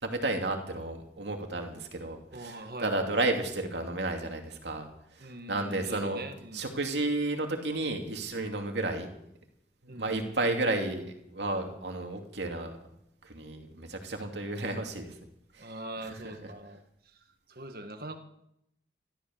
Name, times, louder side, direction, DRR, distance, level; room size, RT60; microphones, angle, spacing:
voice 1, 0.0-6.2 6.5-9.1 9.8-12.8 13.2-15.2 15.5-15.7 16.0-16.5, right 2 dB, 85° right, 3 dB, 2.6 m, -32 dB
voice 2, 2.3-2.9 5.2-6.6 9.9-10.4 15.6-17.2 17.5-18.2, right 1 dB, 55° right, 7 dB, 1.6 m, -42 dB
14.0 x 13.5 x 7.2 m, 0.79 s
head